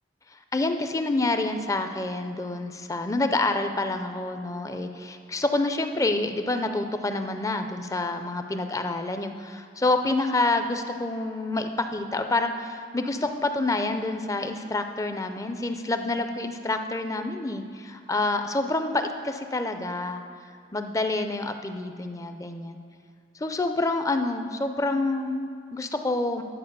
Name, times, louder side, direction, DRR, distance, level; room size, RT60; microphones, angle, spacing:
voice 1, 0.5-20.2 20.7-22.8 23.4-26.4, left 2 dB, 20° left, 7 dB, 0.4 m, -27 dB
11.0 x 4.4 x 6.7 m, 2.4 s
head